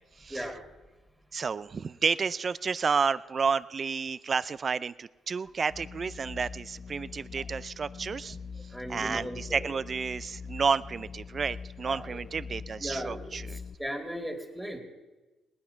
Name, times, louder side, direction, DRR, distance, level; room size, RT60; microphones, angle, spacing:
voice 1, 0.3-0.6 7.4-7.5 8.7-9.8 11.9-12.2 12.8-14.8, equal, ahead, 3 dB, 2.5 m, -37 dB
voice 2, 1.3-8.4 8.9-13.6, right 5 dB, 40° right, 17 dB, 0.4 m, -31 dB
sound 1, 5.7-13.7, left 5 dB, 45° left, 0.5 m, -43 dB
19.0 x 9.8 x 5.8 m, 1.2 s
cardioid pair, 90°, 0 cm